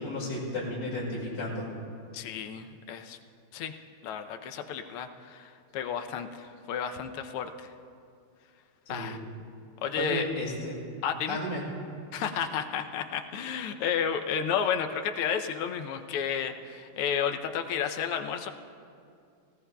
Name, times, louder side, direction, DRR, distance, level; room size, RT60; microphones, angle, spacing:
voice 1, 0.0-1.6 8.9-9.2 10.0-10.7 11.3-11.6, left 1 dB, 50° left, -6 dB, 2.8 m, -33 dB
voice 2, 2.1-3.2 3.5-3.7 4.0-7.7 8.9-9.2 9.8-10.3 11.0-11.4 12.1-18.5, left 7 dB, 80° left, 6 dB, 1.6 m, -32 dB
19.0 x 17.5 x 2.3 m, 2.4 s
omnidirectional pair, 2.4 m